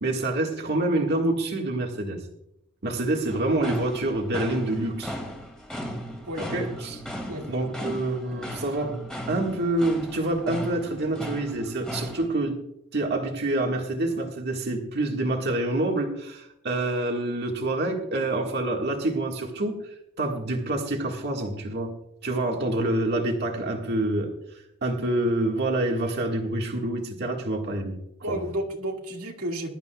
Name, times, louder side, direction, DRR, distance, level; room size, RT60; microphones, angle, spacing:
voice 1, 0.0-2.2 2.8-5.1 6.4-7.0 7.5-9.0 9.3-12.6 12.9-21.9 22.2-24.3 24.8-28.0 28.3-28.4, right 2 dB, 50° right, 1 dB, 1.7 m, -27 dB
sound 1, 3.3-12.3, equal, 5° left, 2.2 m, -37 dB
voice 2, 28.2-29.7, right 1 dB, 80° right, 1 dB, 2.1 m, -31 dB
21.5 x 12.0 x 2.3 m, 0.82 s
head